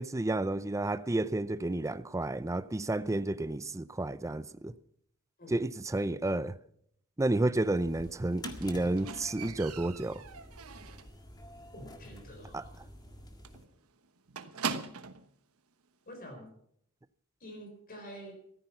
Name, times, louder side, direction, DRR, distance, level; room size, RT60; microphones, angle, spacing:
voice 1, 0.0-4.7 5.5-6.6 7.2-10.2 12.5-12.6, right 2 dB, 15° right, 0.5 m, -31 dB
sound 1, 7.7-13.6, left 1 dB, 20° left, 1.9 m, -49 dB
Squeak, 8.4-11.2 11.5-11.9 12.2-12.3 12.7-12.8 13.1-13.2 13.4-15.3 16.1-16.2, right 5 dB, 75° right, 1.2 m, -41 dB
voice 2, 11.7-12.8 16.1-16.5 17.4-18.3, equal, 40° left, 4.2 m, -47 dB
15.0 x 14.0 x 5.9 m
head